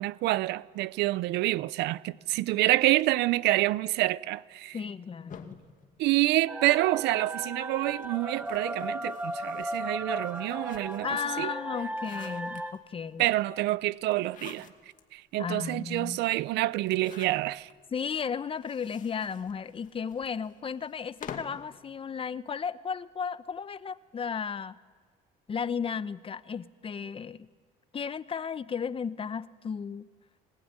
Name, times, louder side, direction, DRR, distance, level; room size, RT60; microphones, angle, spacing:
voice 1, 0.0-4.8 6.0-11.1 11.4-11.5 13.2-14.7 15.1-17.7, right 17 dB, 85° right, 0.7 m, -27 dB
voice 2, 4.7-5.6 11.0-13.2 15.4-16.2 17.9-24.8 25.5-27.5 27.9-30.1, left 6 dB, 35° left, 0.9 m, -34 dB
sound 1, 5.3-6.9 7.8-11.2 11.6-13.1 14.1-15.0 15.5-15.6 15.8-15.9 16.8-17.8 18.5-21.7, left 7 dB, 50° left, 2.3 m, -49 dB
sound 2, 6.5-12.7, right 1 dB, 10° right, 2.1 m, -36 dB
22.0 x 20.0 x 9.7 m
cardioid pair, 110°, 17 cm